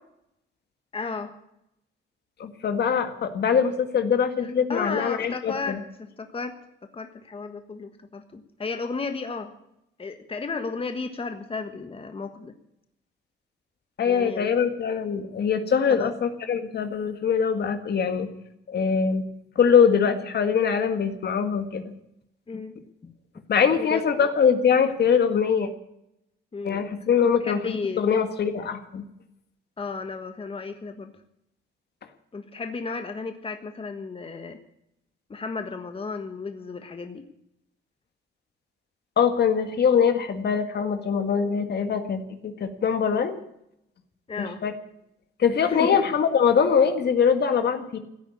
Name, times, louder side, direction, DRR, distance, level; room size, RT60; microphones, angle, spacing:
voice 1, 0.9-1.4 4.4-6.5 6.9-9.5 10.0-12.5 14.0-14.6 15.9-16.1 22.5-22.8 23.0-23.1 23.8-24.3 26.5-26.9 27.2-28.0 29.8-31.1 32.3-34.6 35.3-37.2 44.3-44.6 45.7-46.0, left 4 dB, 30° left, 6 dB, 1.5 m, -34 dB
voice 2, 2.4-5.8 14.0-18.3 18.7-19.2 19.6-21.8 23.5-25.7 26.6-29.0 39.2-43.4 44.4-44.7 45.4-48.0, left 6 dB, 55° left, 7 dB, 1.9 m, -23 dB
16.0 x 8.9 x 9.8 m, 0.80 s
cardioid pair, 90°, 20 cm